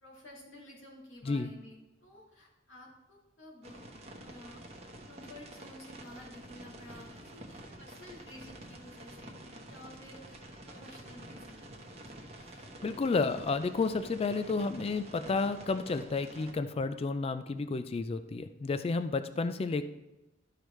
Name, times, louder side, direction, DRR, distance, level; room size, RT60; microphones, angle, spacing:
voice 1, 0.0-3.8 4.2-4.6 5.1-9.3 9.6-12.0, left 1 dB, 80° left, -3 dB, 2.4 m, -52 dB
sound 1, 3.6-16.5, right 1 dB, 35° right, 1.0 m, -49 dB
voice 2, 12.8-19.8, left 3 dB, 30° left, 11 dB, 0.3 m, -31 dB
12.0 x 4.9 x 3.1 m, 1.0 s
head